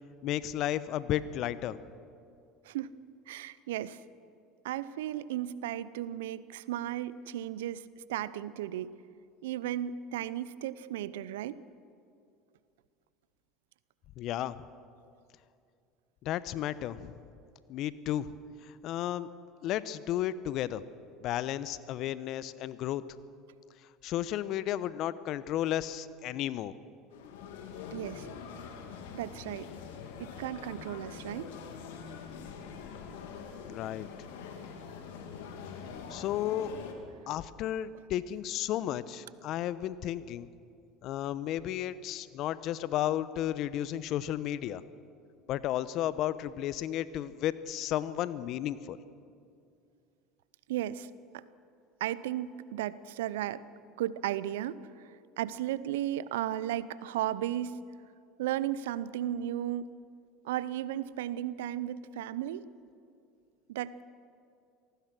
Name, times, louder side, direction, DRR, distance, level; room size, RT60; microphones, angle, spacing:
voice 1, 0.2-1.8 14.2-14.6 16.2-17.1 17.7-18.3 18.6-19.3 19.6-20.8 21.2-23.0 24.0-26.7 33.7-34.1 36.1-36.7 37.3-40.5 41.0-44.8 45.5-49.0, left 12 dB, 55° left, 16 dB, 0.9 m, -33 dB
voice 2, 3.3-4.0 4.6-9.0 9.4-11.6 27.9-28.3 29.1-29.7 30.2-31.5 50.7-51.4 52.0-53.6 54.0-55.1 55.4-57.8 58.4-59.9 60.4-62.6 63.7-64.0, right 12 dB, 75° right, 18 dB, 0.7 m, -35 dB
sound 1, 27.1-36.9, left 6 dB, 75° left, 2.6 m, -44 dB
26.5 x 18.5 x 6.2 m, 2.4 s
hypercardioid pair, 75°, 0 cm